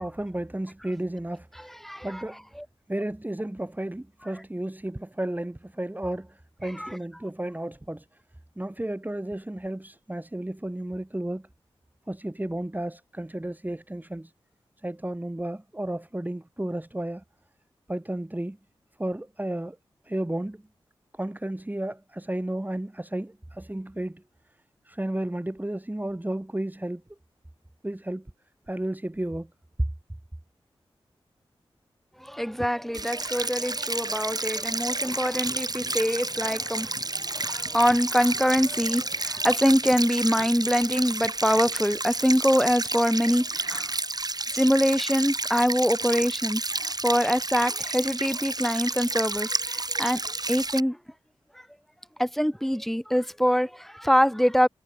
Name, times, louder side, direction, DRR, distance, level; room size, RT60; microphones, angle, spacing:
voice 1, 0.0-1.8 2.0-2.4 2.9-8.1 8.6-11.5 12.1-14.3 14.8-17.2 17.9-18.6 19.0-19.8 20.1-20.6 21.1-24.2 24.9-27.0 27.8-28.3 28.7-29.5, right 1 dB, 15° right, 3.6 m, -33 dB
voice 2, 1.6-2.2 2.6-2.7 6.8-7.0 32.2-44.0 44.5-50.2 50.5-51.0 52.2-54.7, equal, ahead, 1.4 m, -24 dB
sound 1, 32.9-50.8, right 2 dB, 40° right, 5.0 m, -31 dB
cardioid pair, 40°, 10 cm